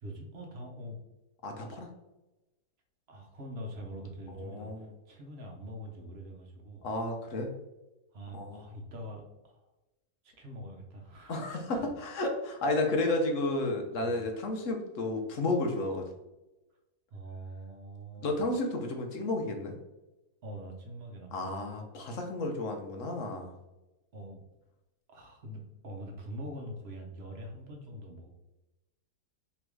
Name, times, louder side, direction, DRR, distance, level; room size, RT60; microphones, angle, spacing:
voice 1, 0.0-1.0 3.1-6.9 8.1-9.6 10.2-11.8 14.0-14.2 17.1-18.4 20.4-21.3 24.1-24.4 25.1-28.3, equal, 50° right, 1 dB, 0.9 m, -44 dB
voice 2, 1.4-1.9 4.3-4.9 6.8-7.5 8.3-8.6 11.3-16.0 18.2-19.7 21.3-23.5, left 2 dB, 60° left, 3 dB, 1.0 m, -32 dB
3.5 x 3.0 x 4.6 m, 1.0 s
omnidirectional pair, 1.7 m